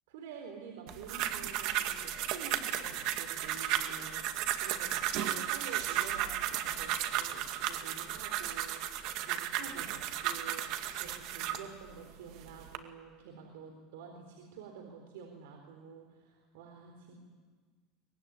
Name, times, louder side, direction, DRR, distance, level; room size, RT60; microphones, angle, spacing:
voice 1, 0.1-10.7 10.9-17.2, right 6 dB, 85° right, 2 dB, 4.1 m, -49 dB
sound 1, 0.9-11.7 12.3-12.8, right 11 dB, 55° right, 2.1 m, -34 dB
24.0 x 22.0 x 9.8 m, 1.5 s
supercardioid pair, 145°, 0 cm